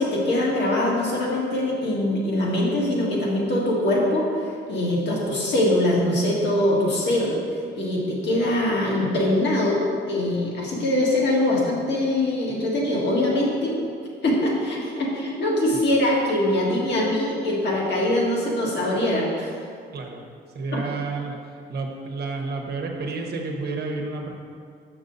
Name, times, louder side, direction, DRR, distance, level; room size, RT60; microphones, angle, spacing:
voice 1, 0.0-7.4 7.7-9.8 10.1-13.8 14.2-19.5 20.7-20.8, left 1 dB, 60° left, -4 dB, 1.9 m, -23 dB
voice 2, 20.5-21.4 21.7-24.3, right 3 dB, 55° right, 2 dB, 1.0 m, -30 dB
6.5 x 6.1 x 4.0 m, 2.2 s
cardioid pair, 90°, 20 cm